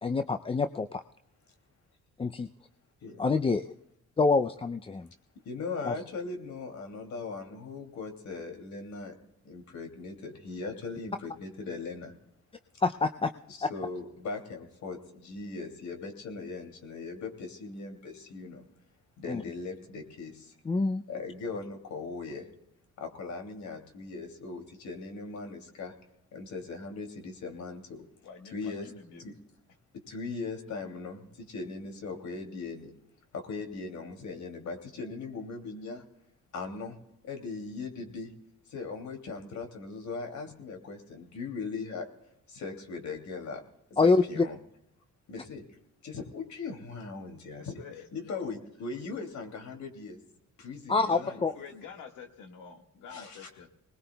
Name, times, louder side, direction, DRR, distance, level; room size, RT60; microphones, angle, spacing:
voice 1, 0.0-1.0 2.2-2.5 3.2-3.6 4.2-5.1 5.8-5.9 12.8-13.3 13.6-13.7 19.3-19.4 20.6-21.0 44.0-44.5 50.9-51.5, left 4 dB, 20° left, 9 dB, 0.5 m, -26 dB
voice 2, 5.3-9.1 9.4-12.1 13.5-18.6 19.2-20.5 21.1-22.5 23.0-25.9 26.3-28.0 28.4-28.9 29.2-29.4 29.9-32.9 33.3-36.0 36.5-37.0 37.2-38.3 38.7-42.1 42.5-43.6 43.9-44.6 45.3-45.6 46.0-47.8 48.1-50.2 50.6-51.4 53.1-53.5, left 4 dB, 70° left, 5 dB, 2.8 m, -39 dB
voice 3, 28.2-29.3 47.6-48.1 48.3-48.6 51.0-53.7, left 6 dB, 90° left, 4 dB, 1.8 m, -47 dB
21.0 x 20.0 x 2.3 m, 0.80 s
cardioid pair, 90°, 30 cm